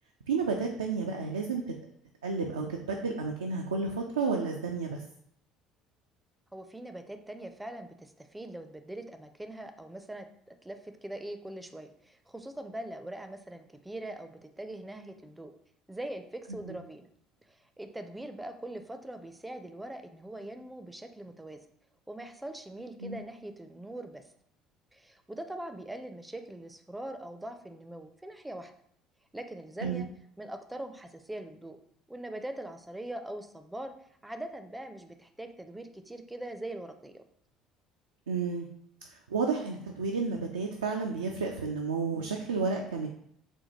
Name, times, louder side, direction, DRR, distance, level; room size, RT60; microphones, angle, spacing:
voice 1, 0.3-1.6 2.2-5.0 16.7-16.8 23.0-23.2 29.8-30.0 38.3-38.7 39.3-43.1, right 4 dB, 80° right, 1 dB, 0.3 m, -31 dB
voice 2, 6.5-15.5 15.9-17.0 17.5-21.6 22.1-24.2 24.9-28.7 29.3-30.1 30.4-31.8 32.1-33.9 34.2-37.2, right 1 dB, 10° right, 7 dB, 0.4 m, -42 dB
4.2 x 2.2 x 2.9 m, 0.69 s
figure-of-eight pair, 60°, 0 cm